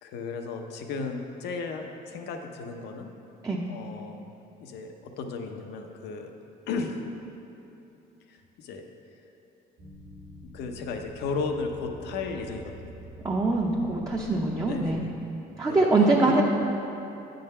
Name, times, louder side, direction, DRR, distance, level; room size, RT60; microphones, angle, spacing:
voice 1, 0.0-3.1 3.7-4.2 4.6-6.3 6.6-7.0 8.3-8.8 10.5-12.9 14.7-15.1 15.6-15.9 16.1-16.4, left 4 dB, 80° left, 4 dB, 0.7 m, -34 dB
sound 1, 9.8-15.2, equal, 65° right, 1.5 m, -46 dB
voice 2, 13.2-15.0 15.6-16.4, right 2 dB, 20° right, -2 dB, 0.6 m, -23 dB
8.4 x 4.0 x 5.4 m, 2.9 s
cardioid pair, 110°, 17 cm